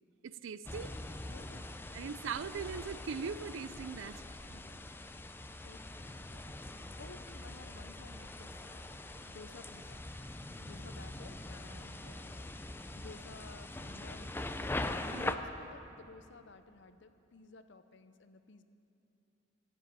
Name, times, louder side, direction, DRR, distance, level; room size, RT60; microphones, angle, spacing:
voice 1, 0.2-0.9 1.9-4.2 15.1-15.4, right 6 dB, 75° right, 15 dB, 0.4 m, -40 dB
sound 1, 0.6-15.4, left 2 dB, 10° left, 0.5 m, -43 dB
voice 2, 1.3-1.7 4.5-5.3 5.6-10.0 10.6-12.5 12.9-14.7 15.0-18.6, left 3 dB, 65° left, 10 dB, 0.7 m, -55 dB
15.0 x 7.4 x 9.0 m, 2.8 s
head